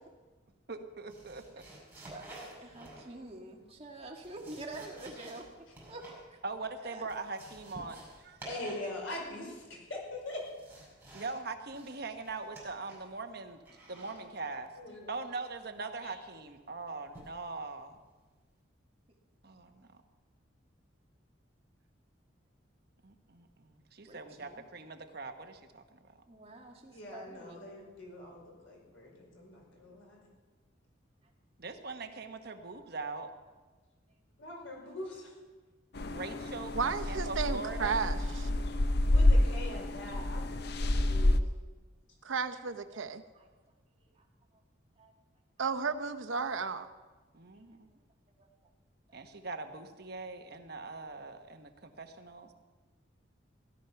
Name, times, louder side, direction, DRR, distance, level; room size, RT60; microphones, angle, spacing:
voice 1, 0.7-1.6 6.4-8.4 11.1-13.6 13.9-14.7 15.1-18.0 19.4-19.9 23.0-26.0 31.6-33.3 36.1-38.0 47.3-47.9 49.1-52.5, right 3 dB, 55° right, 6 dB, 1.1 m, -42 dB
sound 1, 1.1-3.3 4.0-6.3 6.6-6.7 6.9-8.9 9.2-9.7 10.1-11.4 11.7-13.1 13.7-14.2 15.4-15.8 17.1-17.5 17.9-18.2, right 1 dB, 10° right, 5.5 m, -51 dB
voice 2, 2.0-2.3 2.6-5.5 5.9-6.4 6.8-7.1 24.1-24.6 26.3-27.7 38.9-39.0 42.9-43.0 43.3-43.5 45.0-45.1, right 2 dB, 30° right, 1 dB, 1.8 m, -47 dB
voice 3, 8.5-10.4 14.8-15.1 16.0-16.1 26.9-30.3 34.4-35.3 39.1-40.5 40.8-41.4, left 1 dB, 85° left, -1 dB, 5.0 m, -43 dB
sound 2, 35.9-41.4, left 1 dB, 55° left, 0.7 m, -28 dB
voice 4, 36.7-38.5 42.2-43.2 45.6-46.9, right 5 dB, 85° right, 8 dB, 0.8 m, -33 dB
16.5 x 11.5 x 5.8 m, 1.3 s
head